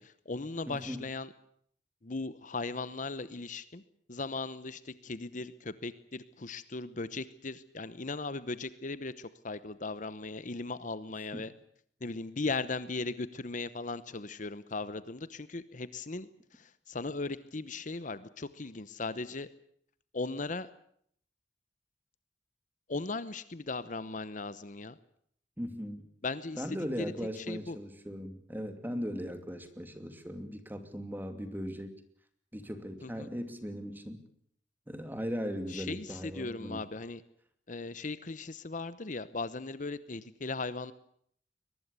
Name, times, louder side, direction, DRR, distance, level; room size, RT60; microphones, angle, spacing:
voice 1, 0.0-1.3 2.0-3.8 4.1-11.5 12.0-19.5 20.1-20.7 22.9-25.0 26.2-27.8 33.0-33.3 35.7-37.2 37.7-40.9, left 3 dB, 45° left, 15 dB, 0.9 m, -38 dB
voice 2, 0.7-1.0 11.3-11.4 25.6-26.0 26.6-32.0 32.5-34.2 34.9-36.8, equal, 10° right, 8 dB, 2.7 m, -38 dB
22.5 x 20.5 x 8.3 m, 0.65 s
head